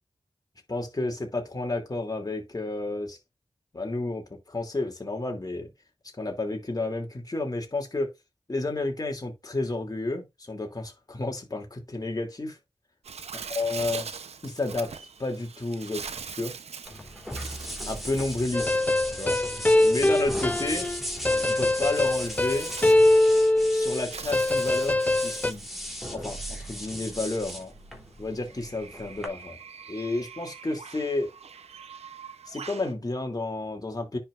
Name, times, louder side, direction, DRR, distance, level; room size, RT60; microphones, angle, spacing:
voice 1, 0.7-3.2 3.7-5.7 6.2-8.1 8.5-12.6 13.5-14.1 14.4-16.5 17.8-18.8 19.1-19.4 19.8-20.9 21.4-22.7 23.7-25.7 26.1-27.7 28.2-29.6 29.9-31.3 32.5-34.2, left 2 dB, 35° left, 2.9 m, -31 dB
Bird, 13.0-32.9, right 6 dB, 90° right, 0.9 m, -43 dB
sound 1, 16.8-29.3, equal, ahead, 3.3 m, -38 dB
sound 2, 18.5-24.0 24.3-25.5, left 1 dB, 15° left, 0.4 m, -22 dB
9.9 x 5.8 x 2.6 m
cardioid pair, 50°, 10 cm